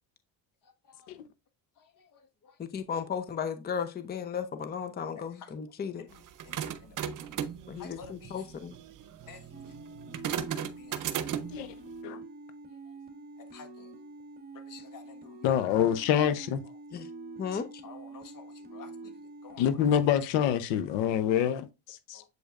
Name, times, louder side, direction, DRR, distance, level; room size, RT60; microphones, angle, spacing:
voice 1, 2.6-6.0 7.7-8.8 16.9-17.1 17.4-17.7, left 7 dB, 20° left, 0.7 m, -35 dB
sound 1, 6.2-11.7, right 9 dB, 45° right, 0.9 m, -36 dB
voice 2, 6.5-7.0 7.8-8.3 9.3-9.4 10.6-11.0 13.5-13.9 14.7-15.5 17.8-18.9 19.4-19.6 22.1-22.2, left 6 dB, 50° left, 1.5 m, -50 dB
sound 2, 9.5-19.9, right 3 dB, 20° right, 1.2 m, -46 dB
voice 3, 15.4-16.6 19.6-22.2, left 9 dB, 90° left, 0.8 m, -26 dB
7.9 x 5.2 x 2.4 m
cardioid pair, 120°, 43 cm